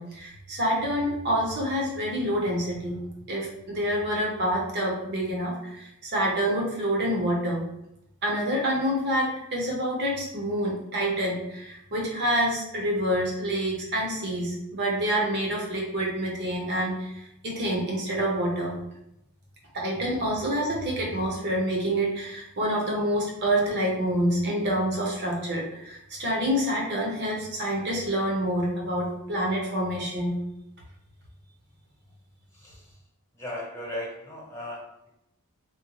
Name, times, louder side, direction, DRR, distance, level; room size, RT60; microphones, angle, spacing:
voice 1, 0.0-3.0 3.3-7.6 8.2-18.7 19.7-30.4, equal, 50° right, -2 dB, 0.9 m, -27 dB
voice 2, 32.5-33.0 33.3-35.1, left 1 dB, 10° left, -5 dB, 1.0 m, -37 dB
3.6 x 2.2 x 3.1 m, 0.82 s
head